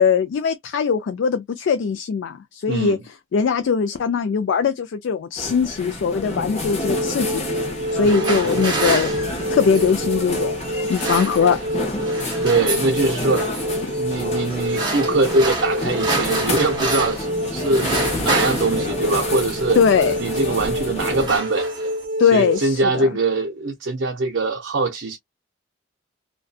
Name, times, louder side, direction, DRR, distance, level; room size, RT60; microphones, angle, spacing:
voice 1, 0.0-3.0 3.3-7.5 7.9-9.1 9.5-10.6 10.9-11.8 19.8-20.2 22.2-23.1, left 6 dB, 65° left, 0.3 m, -20 dB
voice 2, 2.7-3.0 8.0-8.5 12.4-13.6 14.0-19.8 20.2-21.7 22.2-25.2, right 2 dB, 60° right, 0.5 m, -23 dB
sound 1, 5.4-21.4, left 2 dB, 30° left, 0.6 m, -29 dB
sound 2, 6.6-22.6, equal, 40° right, 1.3 m, -27 dB
sound 3, 7.8-10.0 10.7-11.8 12.0-12.9 13.4-13.8 14.5-17.3 17.6-19.7 20.4-20.7 21.0-22.0, right 3 dB, 20° right, 1.0 m, -28 dB
2.6 x 2.2 x 2.3 m
head